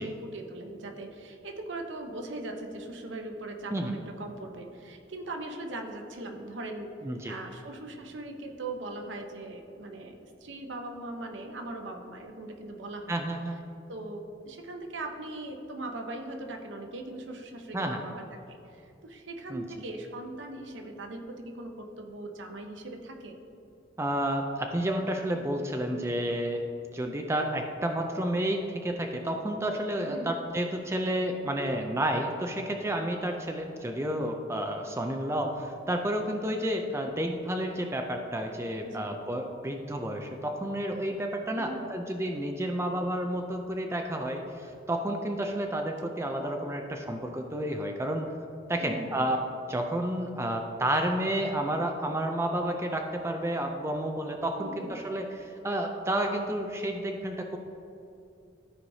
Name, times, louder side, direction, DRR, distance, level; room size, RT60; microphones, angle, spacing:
voice 1, 0.0-6.9 7.3-13.2 13.9-23.3 30.1-30.3 38.8-39.1 41.5-41.9 48.8-49.3 54.5-55.0, right 2 dB, 70° right, 3 dB, 0.8 m, -40 dB
voice 2, 7.0-7.4 13.1-13.6 17.7-18.0 19.5-19.7 24.0-26.6 26.9-48.3 48.7-49.4 49.7-57.6, right 1 dB, 15° right, 3 dB, 0.4 m, -31 dB
13.0 x 4.7 x 2.7 m, 2.8 s
head